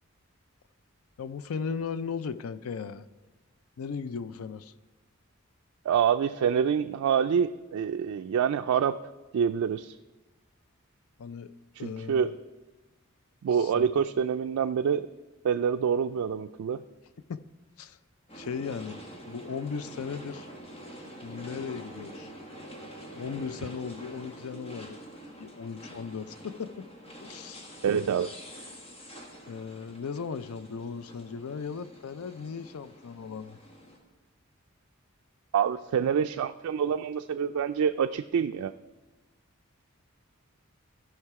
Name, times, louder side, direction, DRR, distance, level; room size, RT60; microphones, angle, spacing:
voice 1, 1.2-3.1 3.8-4.7 11.2-11.5 11.8-12.4 13.5-14.0 17.3-17.4 17.8-18.0 18.3-19.0 19.3-20.5 21.2-22.3 23.1-25.0 25.4-26.9 27.2-27.8 29.5-33.6, left 6 dB, 90° left, 14 dB, 0.5 m, -37 dB
voice 2, 5.9-9.0 9.3-10.0 11.8-12.3 13.4-15.1 15.4-16.8 27.8-28.3 35.5-38.7, right 7 dB, 85° right, 8 dB, 0.3 m, -26 dB
sound 1, 18.3-34.0, equal, 30° left, 1.5 m, -46 dB
15.0 x 5.7 x 4.7 m, 1.2 s
head